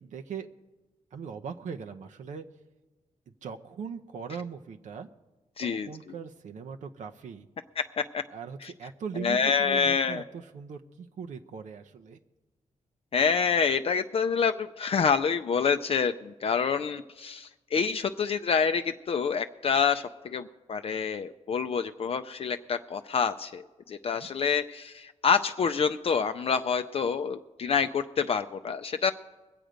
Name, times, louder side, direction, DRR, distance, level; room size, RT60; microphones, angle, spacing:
voice 1, 0.0-0.5 1.1-2.5 3.4-5.1 5.6-7.5 8.3-12.2 24.1-24.3, right 6 dB, 75° right, 5 dB, 0.7 m, -40 dB
voice 2, 5.6-5.9 7.8-8.2 8.6-8.7 9.2-10.2 13.1-29.1, left 6 dB, 50° left, 8 dB, 0.4 m, -27 dB
22.0 x 7.9 x 5.1 m, 1.2 s
wide cardioid pair, 120°, 13 cm